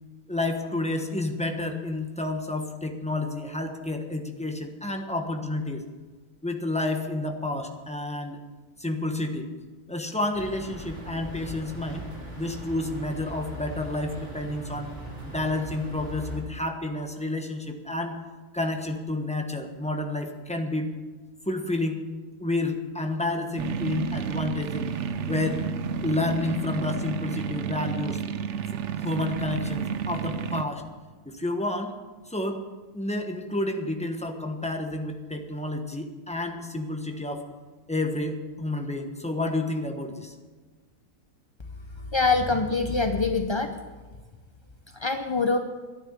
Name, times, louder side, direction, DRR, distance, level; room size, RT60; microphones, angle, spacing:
voice 1, 0.3-5.8 6.4-8.4 8.8-9.5 9.9-12.0 12.4-14.9 15.2-18.2 18.5-20.9 21.5-22.0 22.4-24.9 25.2-25.6 26.0-28.2 28.7-30.8 31.2-31.9 32.3-32.6 32.9-37.4 37.9-40.3, left 2 dB, 5° left, 4 dB, 1.1 m, -30 dB
sound 1, 10.3-16.4, right 1 dB, 40° right, 4.3 m, -40 dB
sound 2, 23.6-30.6, right 6 dB, 60° right, 0.9 m, -31 dB
voice 2, 42.0-43.7 44.9-45.6, left 3 dB, 40° left, 6 dB, 0.4 m, -24 dB
12.0 x 10.5 x 8.1 m, 1.3 s
omnidirectional pair, 1.6 m